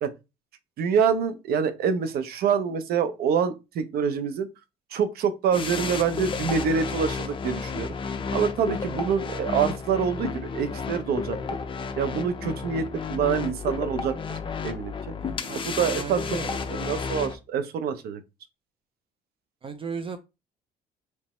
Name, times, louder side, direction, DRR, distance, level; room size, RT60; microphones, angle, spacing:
voice 1, 0.8-4.5 4.9-7.9 8.3-11.4 12.0-14.4 14.6-15.1 15.5-16.2 16.5-18.2, right 7 dB, 70° right, 0.7 m, -26 dB
sound 1, 5.5-17.4, left 5 dB, 30° left, 0.7 m, -32 dB
voice 2, 15.2-15.6 16.0-16.9 19.6-20.2, right 5 dB, 30° right, 0.4 m, -36 dB
3.2 x 3.0 x 4.2 m
cardioid pair, 110°, 17 cm